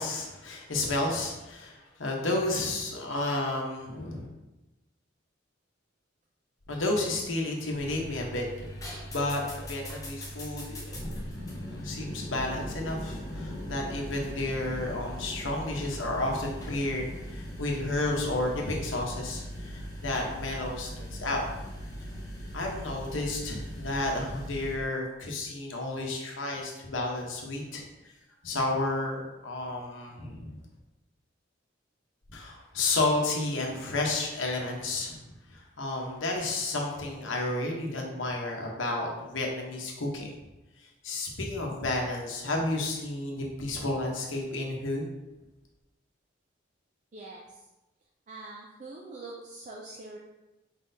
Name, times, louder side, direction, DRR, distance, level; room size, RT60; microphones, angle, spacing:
voice 1, 0.0-4.3 6.7-11.0 11.5-21.4 22.5-28.1 28.4-30.6 32.3-35.2 35.5-40.3 41.0-45.1, left 2 dB, 85° left, 0 dB, 1.0 m, -32 dB
sound 1, 7.7-24.7, equal, 20° left, 0.8 m, -39 dB
voice 2, 47.1-47.4 48.3-50.2, right 2 dB, 40° right, -3 dB, 0.4 m, -43 dB
4.4 x 4.1 x 2.7 m, 1.0 s
head